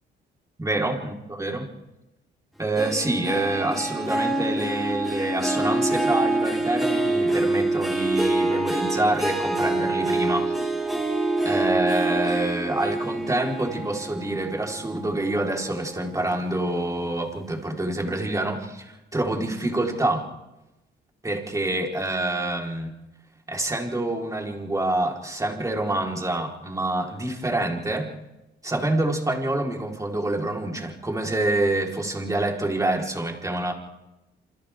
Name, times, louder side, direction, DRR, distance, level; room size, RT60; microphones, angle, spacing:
voice 1, 0.6-1.6 2.6-10.7 11.4-20.3 21.2-22.9 23.5-28.1 28.6-33.7, right 2 dB, 15° right, 0 dB, 4.4 m, -27 dB
Harp, 2.8-15.5 15.9-16.3 16.8-16.9, right 2 dB, ahead, 5.0 m, -26 dB
28.0 x 28.0 x 3.7 m, 1.0 s
cardioid pair, 90°, 20 cm